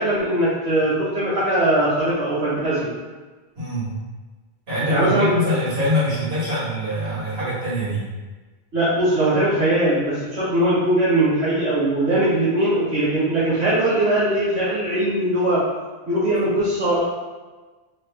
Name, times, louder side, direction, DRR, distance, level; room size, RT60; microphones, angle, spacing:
voice 1, 0.0-2.9 4.9-5.3 8.7-15.6 16.1-17.0, right 1 dB, 90° right, -12 dB, 1.3 m, -20 dB
voice 2, 3.5-3.9 4.7-8.0, equal, 70° right, -10 dB, 1.8 m, -24 dB
3.3 x 3.0 x 3.2 m, 1.3 s
omnidirectional pair, 1.1 m